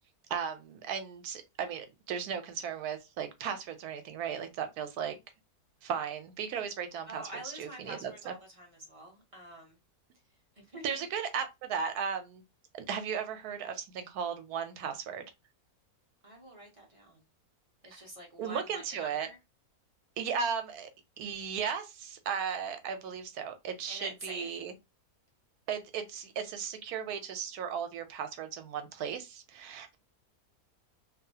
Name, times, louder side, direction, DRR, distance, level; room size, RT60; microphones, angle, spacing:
voice 1, 0.3-5.2 5.8-8.3 10.8-12.4 12.7-15.2 18.4-19.3 20.2-20.9 21.2-24.7 25.7-30.0, right 7 dB, 85° right, 1.1 m, -36 dB
voice 2, 7.0-9.8 10.6-11.0 16.2-17.2 17.8-19.4 23.9-24.5, right 1 dB, 35° right, 0.5 m, -46 dB
2.8 x 2.3 x 2.7 m
omnidirectional pair, 1.6 m